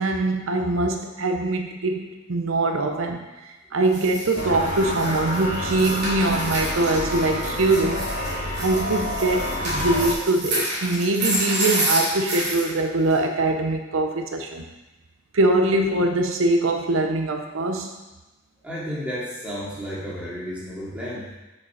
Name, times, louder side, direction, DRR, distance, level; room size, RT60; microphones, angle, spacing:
voice 1, 0.0-8.1 8.6-14.6 15.3-17.9, right 2 dB, 80° right, 4 dB, 0.6 m, -23 dB
sound 1, 3.9-12.7 13.1-13.2, right 1 dB, 55° right, 2.8 m, -29 dB
sound 2, 4.3-10.1, left 1 dB, 80° left, 2.0 m, -28 dB
voice 2, 18.6-21.3, equal, 5° right, -8 dB, 2.2 m, -32 dB
7.1 x 5.1 x 4.8 m, 1.1 s
head